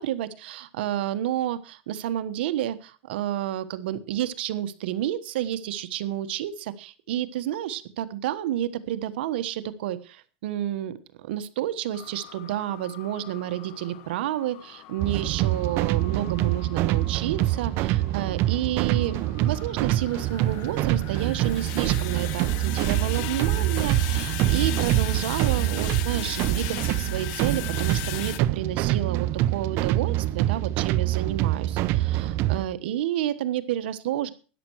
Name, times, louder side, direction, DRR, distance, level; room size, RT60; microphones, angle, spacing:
voice 1, 0.0-34.3, right 12 dB, 75° right, 11 dB, 1.3 m, -30 dB
sound 1, 11.9-28.4, left 15 dB, 55° left, 0.9 m, -39 dB
sound 2, 15.0-32.6, right 15 dB, 45° right, 0.8 m, -25 dB
13.5 x 10.0 x 4.7 m, 0.37 s
supercardioid pair, 145°, 6 cm